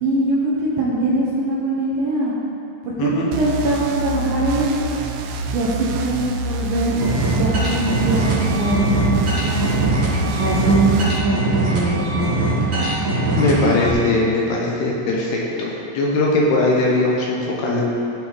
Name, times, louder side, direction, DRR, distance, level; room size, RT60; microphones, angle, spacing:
voice 1, 0.0-2.3 2.8-5.0 5.5-7.0 7.3-9.7 10.4-12.5, right 2 dB, 65° right, -6 dB, 2.3 m, -22 dB
sound 1, 3.3-11.2, right 2 dB, 85° right, 2.2 m, -27 dB
sound 2, 7.0-13.9, right 2 dB, 35° right, 2.0 m, -21 dB
voice 2, 13.4-17.8, left 2 dB, 70° left, -3 dB, 2.9 m, -20 dB
16.0 x 5.7 x 4.0 m, 2.7 s
omnidirectional pair, 5.2 m